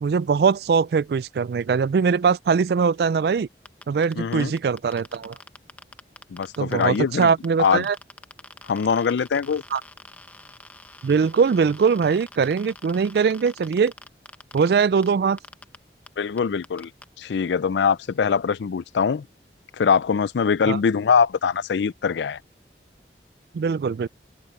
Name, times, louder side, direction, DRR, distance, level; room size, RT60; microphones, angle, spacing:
voice 1, 0.0-3.5 3.9-5.4 6.6-8.0 9.7-9.8 11.0-13.9 14.5-15.4 20.7-20.8 23.5-24.1, right 5 dB, 65° right, 0.3 m, -21 dB
sound 1, 3.7-7.0 7.2-15.1 15.4-15.8 16.1-16.2 16.4-17.0, left 2 dB, 10° left, 0.8 m, -44 dB
voice 2, 4.2-4.5 6.3-7.3 7.6-7.9 8.7-9.6 16.2-16.9 17.2-19.2 19.8-22.4, left 6 dB, 80° left, 0.4 m, -22 dB
open air
head